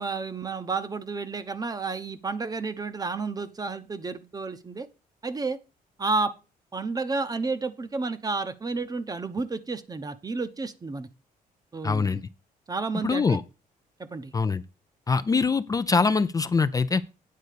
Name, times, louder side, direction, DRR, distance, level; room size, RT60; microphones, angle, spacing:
voice 1, 0.0-4.9 5.2-5.6 6.0-6.3 6.7-11.1 11.7-12.2 12.7-13.4 14.0-14.3, right 3 dB, 25° right, 0.8 m, -31 dB
voice 2, 11.8-12.2 13.0-13.4 14.3-14.6 15.1-17.0, left 4 dB, 25° left, 0.4 m, -23 dB
9.4 x 4.0 x 6.6 m
cardioid pair, 110°, 16 cm